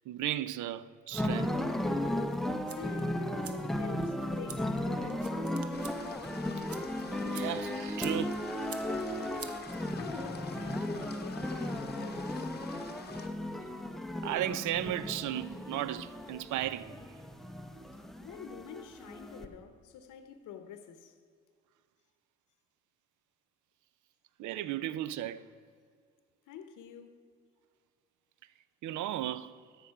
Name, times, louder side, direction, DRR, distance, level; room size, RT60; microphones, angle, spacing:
voice 1, 0.1-1.6 7.2-8.4 14.2-17.0 24.4-25.4 28.8-29.6, right 12 dB, 75° right, 0.5 m, -35 dB
sound 1, 1.1-19.5, left 1 dB, ahead, 0.6 m, -35 dB
sound 2, 2.3-10.3, right 6 dB, 50° right, 0.9 m, -50 dB
voice 2, 2.8-5.8 10.0-12.5 18.2-21.1 26.5-27.1, left 8 dB, 80° left, 0.8 m, -48 dB
sound 3, 5.7-13.3, left 5 dB, 35° left, 0.9 m, -47 dB
13.0 x 5.2 x 5.7 m
cardioid pair, 90°, 30 cm